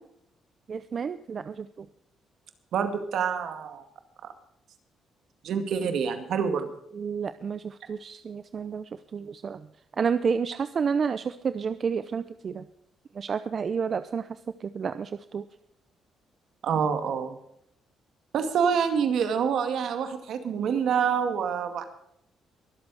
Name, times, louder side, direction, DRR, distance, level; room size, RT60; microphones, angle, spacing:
voice 1, 0.7-1.5 7.0-7.6 7.9-8.8 9.1-9.6 10.0-12.6 13.2-14.2 14.7-15.4, right 6 dB, 45° right, 12 dB, 0.6 m, -30 dB
voice 2, 2.7-3.8 5.4-6.7 16.6-17.3 18.3-21.8, right 7 dB, 70° right, 7 dB, 2.1 m, -26 dB
22.5 x 7.9 x 4.9 m, 0.73 s
cardioid pair, 90°, 0 cm